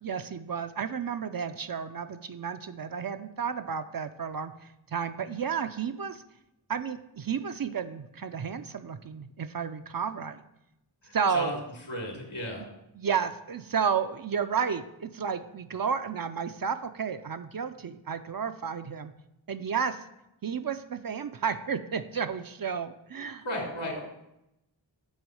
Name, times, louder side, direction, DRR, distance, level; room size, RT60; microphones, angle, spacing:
voice 1, 0.0-6.2 6.7-10.4 11.1-11.6 13.0-19.1 19.5-20.0 20.4-23.4, right 6 dB, 50° right, 9 dB, 0.5 m, -32 dB
voice 2, 11.0-11.5 11.9-12.6 23.4-24.0, left 1 dB, 75° left, -1 dB, 2.6 m, -34 dB
6.3 x 4.5 x 6.3 m, 0.87 s
wide cardioid pair, 45°, 48 cm